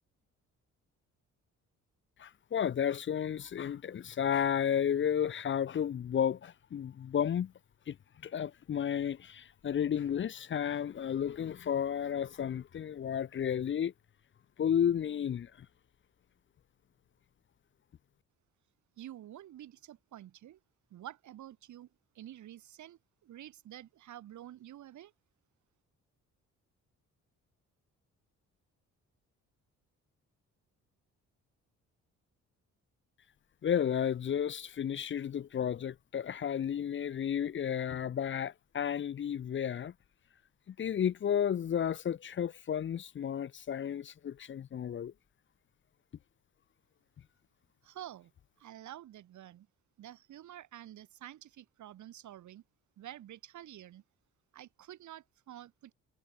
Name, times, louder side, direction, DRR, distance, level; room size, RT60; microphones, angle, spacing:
voice 1, 2.2-7.5 7.9-8.0 8.2-13.9 14.6-15.7 33.6-39.9 40.7-45.1, left 8 dB, 40° left, 0.6 m, -32 dB
voice 2, 19.0-20.6 20.9-21.9 22.1-25.1 47.8-48.3 48.6-49.7 50.0-52.6 53.0-54.0 54.5-55.9, right 12 dB, 75° right, 2.5 m, -49 dB
cardioid pair, 90°, 30 cm